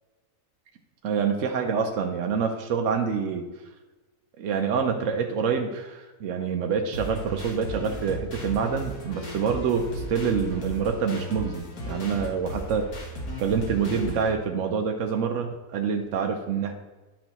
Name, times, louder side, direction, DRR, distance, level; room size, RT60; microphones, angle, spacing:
voice 1, 1.0-3.5 4.4-12.9 13.4-16.7, right 6 dB, 65° right, 4 dB, 1.0 m, -26 dB
sound 1, 6.9-14.3, equal, 85° left, 1.9 m, -35 dB
10.5 x 6.0 x 3.0 m, 1.2 s
omnidirectional pair, 1.5 m